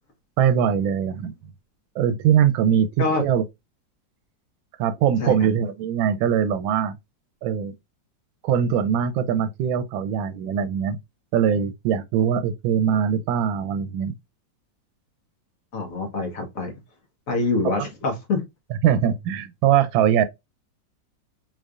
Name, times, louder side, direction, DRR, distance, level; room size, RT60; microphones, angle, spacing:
voice 1, 0.4-1.3 2.0-3.4 4.8-7.0 7.4-7.7 8.4-11.0 11.3-14.1 17.6-17.9 18.8-20.2, right 8 dB, 85° right, 1.3 m, -22 dB
voice 2, 15.7-16.7 17.3-18.4, left 3 dB, 50° left, 1.4 m, -25 dB
3.9 x 3.2 x 2.3 m
omnidirectional pair, 2.1 m